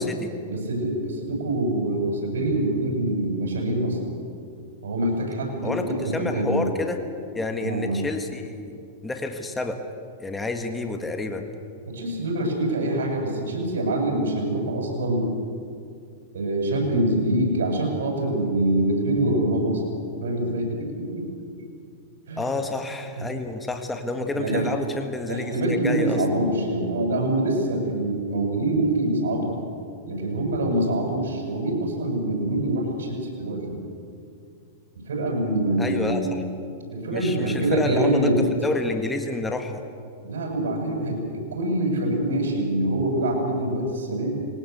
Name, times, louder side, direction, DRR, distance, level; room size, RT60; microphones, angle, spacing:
voice 1, 0.5-4.2 4.8-6.6 7.6-7.9 11.9-15.3 16.3-19.8 20.1-21.3 22.3-22.5 24.3-24.7 25.3-29.5 30.0-33.8 35.1-36.3 36.9-38.4 40.2-44.3, right 1 dB, 80° right, 1 dB, 7.9 m, -25 dB
voice 2, 5.6-7.0 7.3-9.8 10.2-11.5 22.4-26.2 35.8-36.4 37.1-39.8, left 2 dB, 10° left, 5 dB, 1.7 m, -29 dB
21.5 x 18.5 x 8.3 m, 2.3 s
hypercardioid pair, 130°, 0 cm